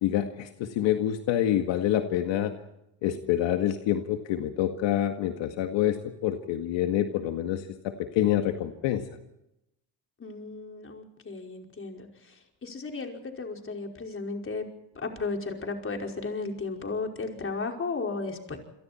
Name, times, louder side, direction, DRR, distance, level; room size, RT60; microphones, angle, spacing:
voice 1, 0.0-2.6 3.0-9.0, left 11 dB, 75° left, 6 dB, 2.0 m, -27 dB
voice 2, 10.2-12.3 12.6-14.6 15.0-18.6, left 3 dB, 30° left, 3 dB, 5.3 m, -34 dB
29.0 x 23.5 x 4.5 m, 0.84 s
cardioid pair, 105°, 45 cm